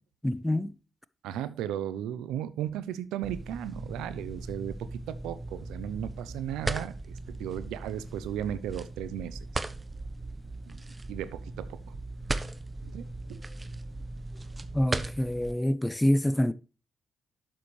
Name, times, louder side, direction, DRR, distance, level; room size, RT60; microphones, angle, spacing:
voice 1, 0.2-0.7 14.7-16.5, left 1 dB, 10° left, 0.8 m, -26 dB
voice 2, 1.2-9.6 10.7-10.8 11.1-12.0 12.8-13.4, right 10 dB, 85° right, 0.6 m, -36 dB
sound 1, 3.2-15.5, right 2 dB, 30° right, 1.0 m, -38 dB
11.5 x 7.5 x 3.2 m
hypercardioid pair, 45°, 0 cm